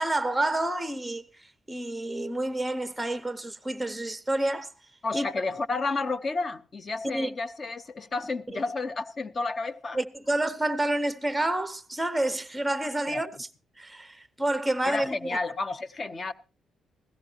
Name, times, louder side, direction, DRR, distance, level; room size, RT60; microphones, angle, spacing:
voice 1, 0.0-4.7 5.1-5.3 7.0-7.3 8.5-8.6 9.9-13.5 13.8-15.3, right 1 dB, 5° right, 0.7 m, -29 dB
voice 2, 5.0-10.0 13.1-13.2 14.8-16.3, left 3 dB, 30° left, 0.6 m, -31 dB
17.0 x 14.0 x 2.8 m
cardioid pair, 140°, 0 cm